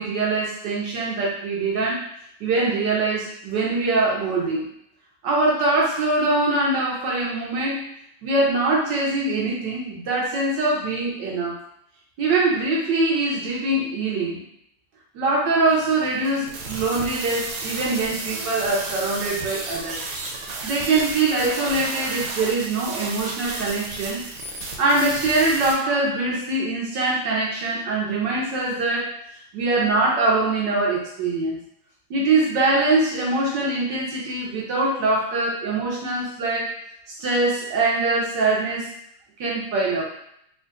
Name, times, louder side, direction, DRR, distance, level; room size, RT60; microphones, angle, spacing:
voice 1, 0.0-2.1 2.4-4.7 5.2-7.8 8.2-11.6 12.2-14.4 15.1-20.0 20.6-24.2 24.8-29.1 29.5-31.6 32.1-36.7 37.2-38.9 39.4-40.1, right 2 dB, 65° right, -4 dB, 1.3 m, -23 dB
sound 1, 15.7-25.7, right 3 dB, 80° right, 1.5 m, -33 dB
3.7 x 2.6 x 2.5 m, 0.71 s
omnidirectional pair, 2.3 m